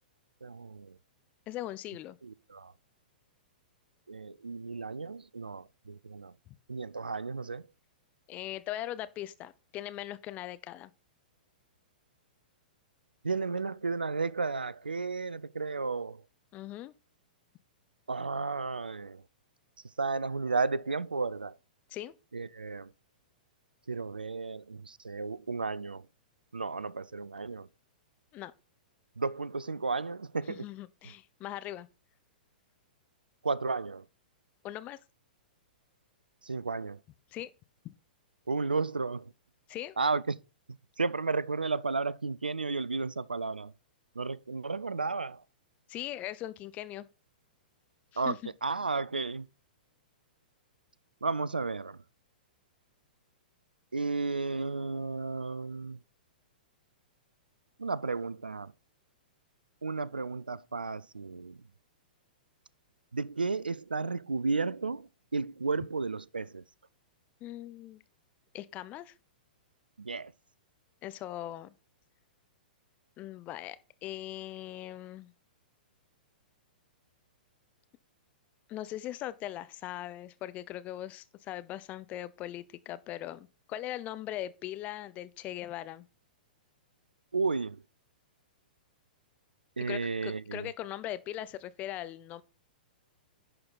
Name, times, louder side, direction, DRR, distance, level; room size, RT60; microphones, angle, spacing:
voice 1, 0.4-1.0 2.2-2.7 4.1-6.3 6.7-7.7 13.2-16.2 18.1-19.2 20.0-21.5 22.3-22.9 23.9-26.1 26.5-27.7 29.2-30.6 33.4-34.0 36.4-37.0 38.5-39.3 40.0-40.4 41.0-43.7 44.2-45.4 48.2-49.5 51.2-52.0 53.9-56.0 57.8-58.7 59.8-61.6 63.1-66.6 70.0-70.3 87.3-87.8 89.8-90.7, right 4 dB, 90° right, 0.4 m, -33 dB
voice 2, 1.5-2.2 6.5-6.6 8.3-10.9 16.5-16.9 21.9-22.1 28.3-28.5 30.5-31.9 34.6-35.0 37.3-37.5 37.8-37.9 39.7-40.0 45.9-47.1 48.1-48.4 67.4-68.0 68.5-69.1 71.0-71.7 73.2-75.3 78.7-86.1 89.9-92.4, left 13 dB, 30° left, 0.6 m, -40 dB
11.0 x 4.5 x 4.0 m
figure-of-eight pair, 110°, 5 cm